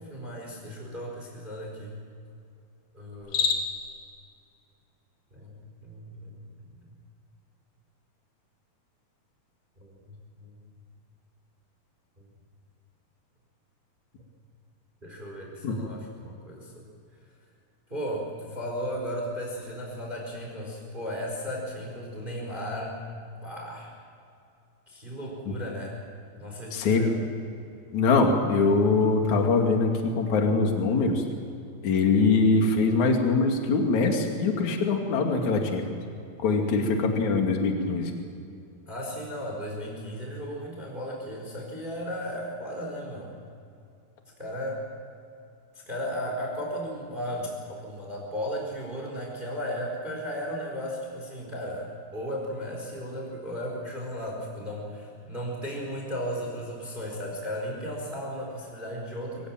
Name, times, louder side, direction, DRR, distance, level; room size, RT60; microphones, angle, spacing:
voice 1, 0.0-2.0 2.9-3.6 5.3-6.4 9.8-10.5 15.0-16.9 17.9-23.1 23.4-23.9 24.9-26.0 26.4-27.2 36.6-36.9 38.9-43.4 44.4-44.8 45.9-59.5, equal, 10° right, -1 dB, 4.2 m, -35 dB
Cricket, 3.1-3.9, left 6 dB, 80° left, 4.1 m, -27 dB
voice 2, 26.7-27.0 27.9-31.2 31.8-35.8 36.4-38.1, left 3 dB, 45° left, 2 dB, 3.4 m, -23 dB
24.5 x 17.0 x 9.1 m, 2.6 s
omnidirectional pair, 5.3 m